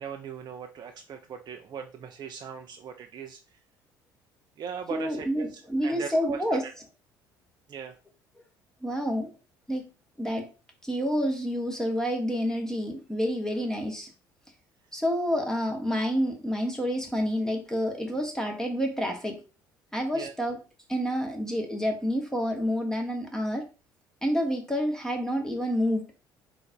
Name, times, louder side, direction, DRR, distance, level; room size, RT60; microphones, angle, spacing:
voice 1, 0.0-3.4 4.6-6.7 7.7-7.9 20.1-20.3, right 7 dB, 40° right, 5 dB, 0.5 m, -39 dB
voice 2, 4.9-6.6 8.8-9.3 9.7-9.9 10.2-10.4 10.8-14.1 14.9-19.3 19.9-20.6 20.9-23.6 24.2-26.1, equal, 5° left, 2 dB, 1.1 m, -28 dB
3.8 x 2.5 x 4.2 m, 0.33 s
figure-of-eight pair, 55°, 11 cm